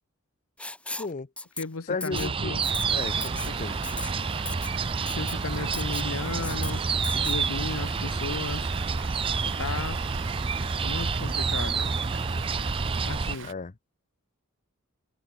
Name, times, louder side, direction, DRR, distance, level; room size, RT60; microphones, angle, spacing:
Writing, 0.6-1.1 1.4-1.6 2.0-2.3 2.6-2.8 3.2-3.5 3.8-4.1 4.4-4.7 5.1-5.3 5.7-6.1 6.4-6.7 7.0-7.4, left 2 dB, 5° left, 4.9 m, -36 dB
voice 1, 1.0-1.3 1.9-2.5 2.9-3.8 13.4-13.7, left 4 dB, 35° left, 0.7 m, -34 dB
voice 2, 1.6-2.7 5.1-6.8 7.1-8.7 9.4-10.0 10.8-11.9 13.0-13.5, left 3 dB, 70° left, 1.1 m, -35 dB
sound 1, 2.1-13.4, right 4 dB, 25° right, 0.5 m, -29 dB
Water, 2.6-13.5, right 7 dB, 60° right, 1.5 m, -42 dB
head